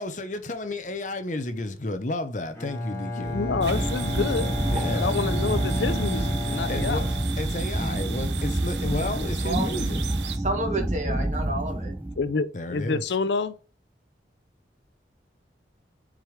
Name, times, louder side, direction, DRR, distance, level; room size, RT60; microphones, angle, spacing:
voice 1, 0.0-3.4 4.7-5.2 6.7-10.0 12.5-13.0, left 2 dB, 45° left, 0.8 m, -32 dB
Bowed string instrument, 2.5-8.0, left 1 dB, 15° left, 2.0 m, -33 dB
voice 2, 3.1-4.5 4.9-7.0 12.2-13.5, left 4 dB, 80° left, 0.5 m, -28 dB
sound 1, 3.2-12.3, right 1 dB, 10° right, 0.3 m, -28 dB
sound 2, 3.6-10.4, right 6 dB, 80° right, 0.9 m, -37 dB
voice 3, 10.4-11.9, right 2 dB, 40° right, 1.9 m, -30 dB
7.4 x 4.9 x 3.3 m
head